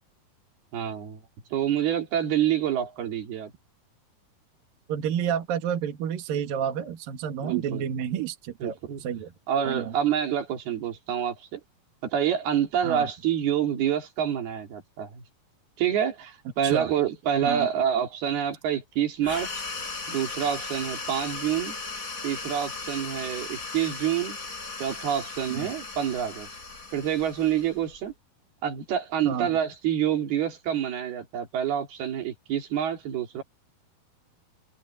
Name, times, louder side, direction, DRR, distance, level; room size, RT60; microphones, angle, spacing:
voice 1, 0.7-1.2 1.5-3.5 7.4-7.9 8.6-9.0 9.5-11.6 12.0-15.2 15.8-19.5 20.1-21.8 22.2-24.4 24.8-26.5 26.9-28.1 28.6-33.4, right 9 dB, 90° right, 5.0 m, -27 dB
voice 2, 4.9-9.3 9.6-9.9 12.8-13.1 16.6-16.9 17.4-17.7 25.5-25.7 29.2-29.5, right 8 dB, 70° right, 3.5 m, -30 dB
sound 1, 19.2-28.1, left 3 dB, 20° left, 5.7 m, -37 dB
omnidirectional pair, 4.3 m